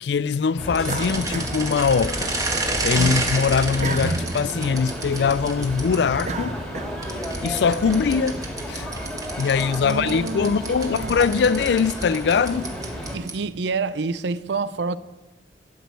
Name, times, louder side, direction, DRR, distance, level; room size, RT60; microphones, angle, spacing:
voice 1, 0.0-2.3 2.8-6.6 7.4-8.4 8.7-8.9 9.4-12.7, left 5 dB, 70° left, 0.4 m, -22 dB
sound 1, 0.6-13.2, equal, 5° left, 2.2 m, -32 dB
sound 2, 0.7-6.2 7.0-13.5, right 3 dB, 20° right, 1.5 m, -31 dB
sound 3, 0.8-2.4 2.8-7.4, right 2 dB, 40° right, 0.7 m, -33 dB
voice 2, 3.0-3.3 9.8-11.2 13.1-15.0, right 4 dB, 75° right, 0.5 m, -28 dB
12.0 x 6.3 x 8.1 m
head